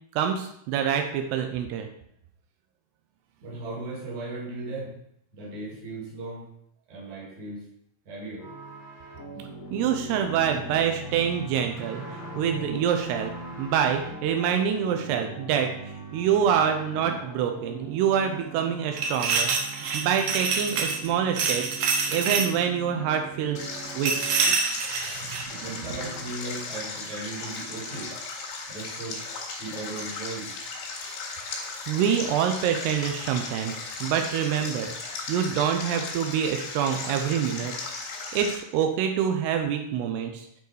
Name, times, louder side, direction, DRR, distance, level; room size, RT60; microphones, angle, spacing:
voice 1, 0.2-1.9 9.7-12.0 12.4-13.3 13.6-15.7 16.1-19.5 19.9-21.8 22.1-23.7 24.0-24.1 25.1-25.7 31.9-34.9 35.3-37.7 38.3-40.5, right 8 dB, 85° right, 5 dB, 2.8 m, -26 dB
voice 2, 3.4-4.9 5.3-6.5 6.9-7.7 8.1-8.5 25.6-28.1 28.7-29.2 29.6-30.5, right 2 dB, 50° right, -3 dB, 3.3 m, -37 dB
sound 1, 8.4-24.5 25.5-26.3, right 2 dB, 50° left, 1.5 m, -41 dB
sound 2, 19.0-21.1 21.4-22.5 24.1-25.4, right 5 dB, 65° right, 2.3 m, -26 dB
Stream, 23.6-38.6, left 4 dB, 80° left, 3.9 m, -36 dB
9.4 x 4.7 x 4.8 m, 0.74 s
omnidirectional pair, 4.7 m